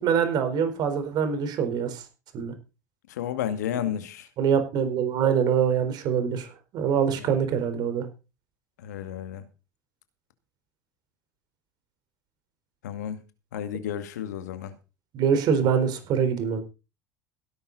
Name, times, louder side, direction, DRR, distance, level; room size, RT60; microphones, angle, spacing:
voice 1, 0.0-2.0 2.3-2.5 4.4-6.5 6.7-8.0 15.1-16.6, right 7 dB, 50° right, 4.3 m, -24 dB
voice 2, 3.1-4.3 7.2-7.3 8.8-9.4 12.8-13.2 13.5-14.7, left 9 dB, 70° left, 2.2 m, -32 dB
17.0 x 11.0 x 4.1 m
figure-of-eight pair, 75°, 9 cm